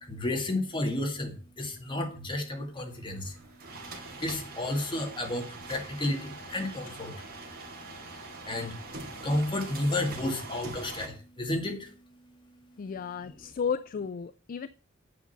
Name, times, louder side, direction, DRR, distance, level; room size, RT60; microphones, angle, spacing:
voice 1, 0.0-3.4 3.9-7.3 8.1-12.9, left 1 dB, 25° left, 2.0 m, -32 dB
sound 1, 2.9-11.1, right 3 dB, 45° right, 2.3 m, -43 dB
voice 2, 12.8-14.7, left 6 dB, 40° left, 0.3 m, -33 dB
8.6 x 5.3 x 7.1 m
head